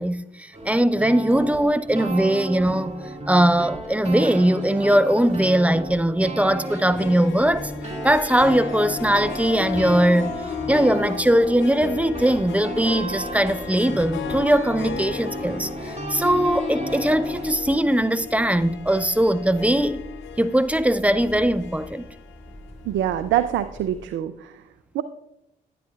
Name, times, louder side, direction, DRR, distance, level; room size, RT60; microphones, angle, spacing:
voice 1, 0.0-3.0 3.3-7.7 8.0-10.3 10.7-20.0 20.4-22.1, right 1 dB, 5° right, 0.6 m, -20 dB
sound 1, 0.5-17.5, right 2 dB, 30° right, 2.2 m, -34 dB
Harp, 6.6-23.4, left 8 dB, 65° left, 0.6 m, -35 dB
sound 2, 7.3-24.1, equal, 30° left, 1.8 m, -44 dB
voice 2, 22.9-24.5 24.9-25.0, right 11 dB, 65° right, 0.5 m, -24 dB
11.0 x 9.7 x 2.4 m
hypercardioid pair, 45°, 21 cm